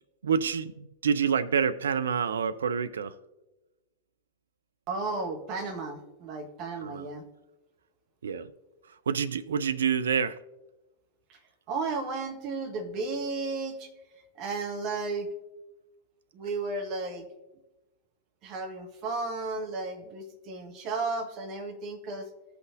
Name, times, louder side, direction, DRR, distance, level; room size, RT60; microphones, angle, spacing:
voice 1, 0.2-3.1 6.8-7.1 8.2-8.5 9.1-10.4, right 7 dB, 70° right, 0.4 m, -27 dB
voice 2, 4.9-7.2 11.7-13.9 14.4-15.3 16.3-17.2 18.4-22.3, right 3 dB, 40° right, 1.2 m, -33 dB
15.0 x 5.8 x 2.6 m
figure-of-eight pair, 90°, 0 cm